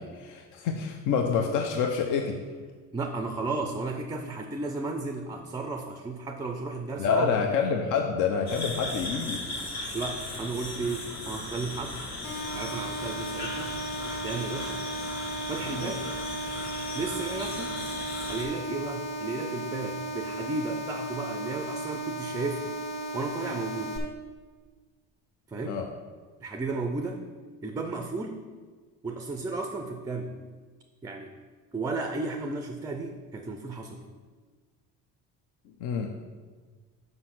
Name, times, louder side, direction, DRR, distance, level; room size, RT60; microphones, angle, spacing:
voice 1, 0.0-2.4 7.0-9.4 25.6-25.9 35.8-36.1, left 6 dB, 70° left, 3 dB, 0.7 m, -27 dB
voice 2, 2.9-7.3 9.9-12.0 12.5-13.8 14.1-14.9 15.5-16.1 16.9-17.9 18.3-22.8 23.1-24.0 25.5-25.8 26.4-27.2 27.6-28.4 29.0-30.4 31.0-31.4 31.7-34.0, right 3 dB, 10° right, 5 dB, 0.3 m, -34 dB
sound 1, 8.5-18.4, left 2 dB, 55° left, 1.6 m, -37 dB
sound 2, 12.2-24.0, right 1 dB, 40° left, 1.4 m, -35 dB
6.2 x 5.4 x 5.9 m, 1.5 s
cardioid pair, 150°, 32 cm